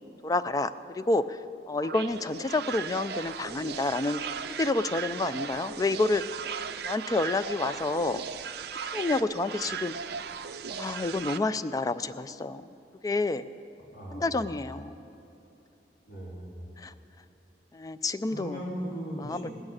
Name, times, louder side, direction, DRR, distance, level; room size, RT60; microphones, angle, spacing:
voice 1, 0.2-1.4 1.7-4.2 4.6-6.2 6.8-8.2 8.9-9.9 10.7-12.7 13.0-13.4 14.1-15.0 16.8-16.9 17.7-18.6 19.2-19.5, left 2 dB, 20° left, 13 dB, 0.3 m, -29 dB
sound 1, 1.8-11.4, right 6 dB, 65° right, 0.5 m, -37 dB
voice 2, 13.8-14.5 16.1-16.7 18.2-19.5, equal, 65° left, -4 dB, 3.4 m, -38 dB
18.5 x 6.4 x 8.8 m, 2.8 s
head